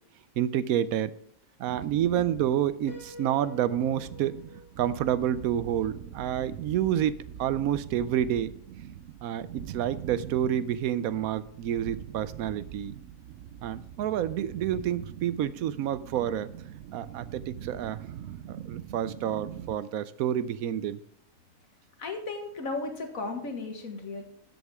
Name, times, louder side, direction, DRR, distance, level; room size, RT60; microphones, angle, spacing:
voice 1, 0.4-1.1 1.6-4.4 4.8-8.5 9.2-12.9 13.6-16.5 16.9-18.0 18.5-21.0, right 10 dB, 90° right, 16 dB, 1.1 m, -29 dB
sound 1, 1.7-19.7, right 10 dB, 65° right, 0.9 m, -43 dB
Piano, 2.9-6.6, left 1 dB, 45° left, 5.2 m, -50 dB
voice 2, 22.0-24.2, left 3 dB, 70° left, 4 dB, 2.1 m, -35 dB
13.5 x 8.0 x 3.5 m, 0.68 s
omnidirectional pair, 1.5 m